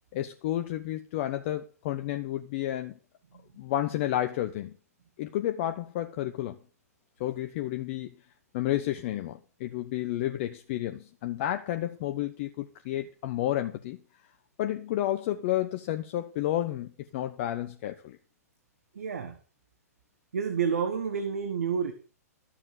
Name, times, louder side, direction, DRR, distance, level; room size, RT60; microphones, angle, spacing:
voice 1, 0.1-3.0 3.6-4.8 5.2-6.6 7.2-8.1 8.5-14.0 14.6-18.2, left 13 dB, 45° left, 1.0 m, -31 dB
voice 2, 18.9-19.4 20.3-21.9, right 6 dB, 65° right, 1.5 m, -29 dB
13.5 x 7.3 x 6.8 m
figure-of-eight pair, 110°, 9 cm